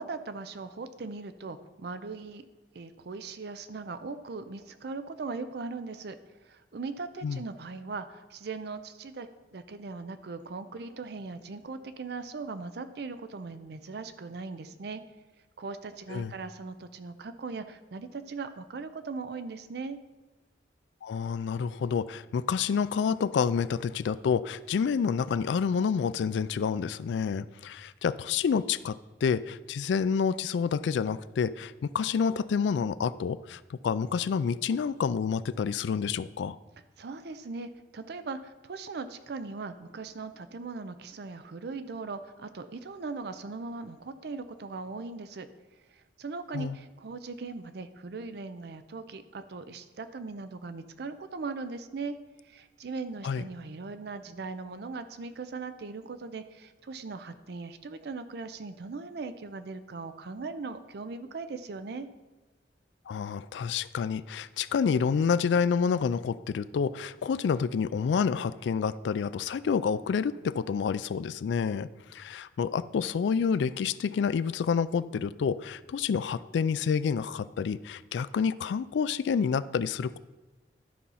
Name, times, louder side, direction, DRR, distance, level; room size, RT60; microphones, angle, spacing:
voice 1, 0.0-2.4 2.7-6.2 6.4-15.0 15.6-20.0 37.0-45.5 45.9-52.2 52.4-62.1, right 4 dB, 60° right, 11 dB, 0.5 m, -39 dB
voice 2, 21.0-29.0 29.2-36.6 46.5-46.8 53.2-53.4 63.1-80.2, left 6 dB, 80° left, 16 dB, 0.3 m, -28 dB
12.5 x 4.2 x 5.5 m, 1.1 s
head